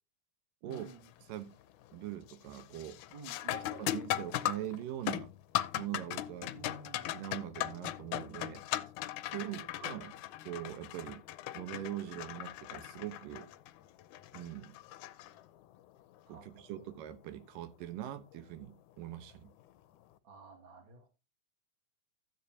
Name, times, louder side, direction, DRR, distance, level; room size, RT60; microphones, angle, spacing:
voice 1, 0.6-1.1 3.1-4.0 6.5-7.1 9.4-9.6 16.3-16.8 20.2-21.1, right 3 dB, 40° right, 2.3 m, -52 dB
sound 1, 0.7-1.1 1.5-1.9 2.3-15.8 18.3-18.4 19.2-19.5, left 13 dB, 80° left, 1.8 m, -39 dB
voice 2, 1.9-3.0 3.5-5.3 5.8-6.6 7.1-8.6 9.2-10.1 10.5-11.2 11.5-13.5 14.3-14.8 16.3-19.5, right 12 dB, 75° right, 2.6 m, -42 dB
14.5 x 8.5 x 2.8 m
omnidirectional pair, 4.1 m